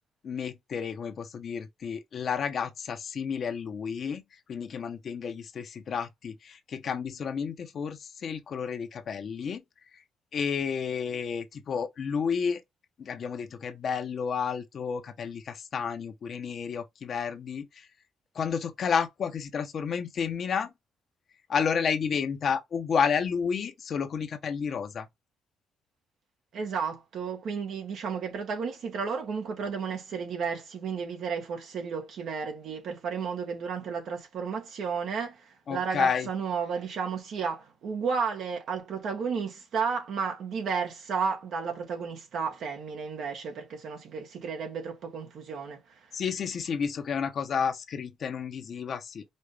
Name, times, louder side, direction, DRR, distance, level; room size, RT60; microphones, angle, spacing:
voice 1, 0.2-9.6 10.3-12.6 13.0-17.9 18.3-20.7 21.5-25.1 35.7-36.3 46.1-49.2, left 6 dB, 55° left, 0.9 m, -31 dB
voice 2, 26.5-45.8, right 6 dB, 70° right, 1.6 m, -33 dB
5.3 x 2.5 x 3.3 m
cardioid pair, 90°, 0 cm